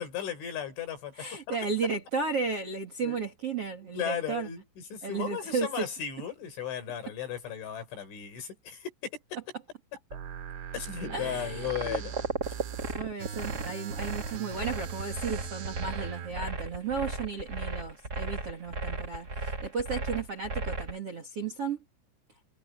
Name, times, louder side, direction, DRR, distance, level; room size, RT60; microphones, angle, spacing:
voice 1, 0.0-1.6 3.0-3.2 3.9-4.6 4.9-9.4 10.7-12.1, left 9 dB, 65° left, 8.6 m, -36 dB
voice 2, 1.2-4.5 5.0-5.9 11.1-12.0 12.9-21.8, right 5 dB, 40° right, 2.2 m, -34 dB
sound 1, 10.1-16.3, right 8 dB, 70° right, 5.0 m, -40 dB
sound 2, 11.0-14.6, left 1 dB, 25° left, 4.0 m, -50 dB
sound 3, 11.7-21.0, right 3 dB, 25° right, 2.7 m, -35 dB
omnidirectional pair, 5.8 m